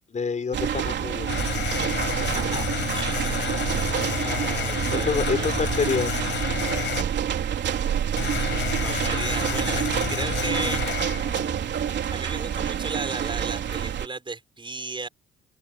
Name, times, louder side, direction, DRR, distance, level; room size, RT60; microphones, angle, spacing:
voice 1, 0.1-1.3 3.9-4.2 4.9-6.1, left 5 dB, 35° left, 4.8 m, -27 dB
sound 1, 0.5-14.1, right 9 dB, 65° right, 3.5 m, -27 dB
sound 2, 1.3-7.0 8.2-11.8, left 10 dB, 70° left, 4.5 m, -30 dB
voice 2, 2.3-5.5 8.8-10.8 12.1-15.1, right 3 dB, 25° right, 5.8 m, -35 dB
open air
cardioid pair, 90°, 20 cm